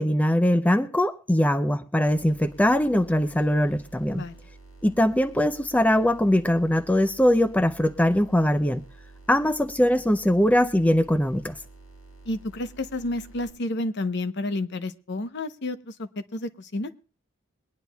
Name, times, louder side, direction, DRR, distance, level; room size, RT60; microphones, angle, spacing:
voice 1, 0.0-4.2 4.8-8.8 9.3-11.6, left 1 dB, 5° left, 0.5 m, -21 dB
sound 1, 2.1-13.5, right 3 dB, 75° left, 6.9 m, -49 dB
voice 2, 12.3-16.9, left 2 dB, 55° left, 0.8 m, -30 dB
23.0 x 10.0 x 2.3 m
head